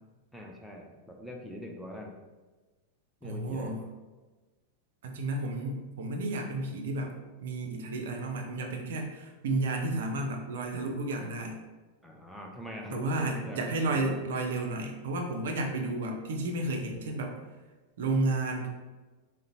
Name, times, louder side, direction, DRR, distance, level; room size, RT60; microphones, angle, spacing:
voice 1, 0.3-2.2 3.2-3.8 12.0-14.2, equal, ahead, 0 dB, 0.4 m, -43 dB
voice 2, 3.2-3.8 5.0-7.2 7.4-11.6 12.9-17.4 18.0-18.7, right 2 dB, 60° right, 2 dB, 0.4 m, -32 dB
3.7 x 2.1 x 2.6 m, 1.2 s
figure-of-eight pair, 90°, 0 cm